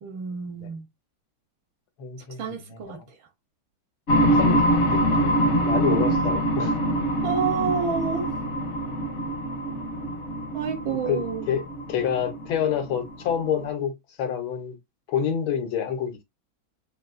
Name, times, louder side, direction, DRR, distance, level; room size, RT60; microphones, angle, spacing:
voice 1, 0.0-0.9 2.4-3.2 7.2-8.3 10.5-11.4, right 6 dB, 75° right, 1.6 m, -29 dB
voice 2, 2.0-3.1 4.2-4.6 4.9-6.8 11.1-11.6 11.9-14.8 15.1-16.2, left 8 dB, 85° left, 1.8 m, -28 dB
sound 1, 4.1-13.6, right 1 dB, 55° left, 0.8 m, -24 dB
6.2 x 2.7 x 2.5 m
omnidirectional pair, 2.2 m